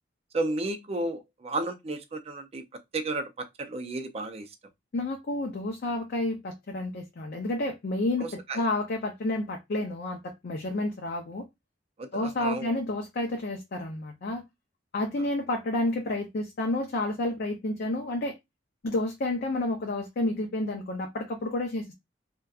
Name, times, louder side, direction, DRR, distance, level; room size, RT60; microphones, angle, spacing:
voice 1, 0.3-4.5 8.2-8.6 12.0-12.8, right 2 dB, 35° right, 0.4 m, -33 dB
voice 2, 4.9-11.4 12.1-14.4 14.9-18.3 18.8-21.9, left 2 dB, 55° left, 0.5 m, -30 dB
2.6 x 2.2 x 2.3 m
head